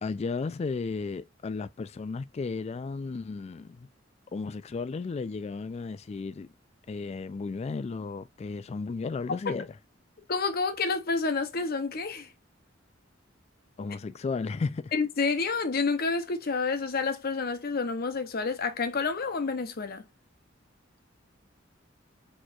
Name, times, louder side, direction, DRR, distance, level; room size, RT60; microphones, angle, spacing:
voice 1, 0.0-3.9 4.3-6.5 6.9-9.7 13.8-14.9, left 4 dB, 35° left, 0.3 m, -34 dB
voice 2, 10.3-12.3 14.9-20.0, left 4 dB, 50° left, 0.7 m, -29 dB
4.3 x 3.0 x 2.4 m
head